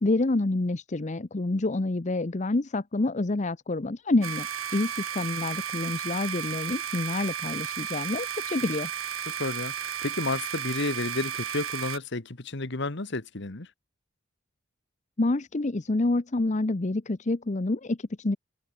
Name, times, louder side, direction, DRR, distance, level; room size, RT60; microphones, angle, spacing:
voice 1, 0.0-4.5 4.7-8.9 15.2-18.4, left 2 dB, 35° left, 0.7 m, -27 dB
sound 1, 4.2-12.0, right 9 dB, 90° right, 2.4 m, -34 dB
voice 2, 9.4-13.7, left 2 dB, 60° left, 1.6 m, -31 dB
head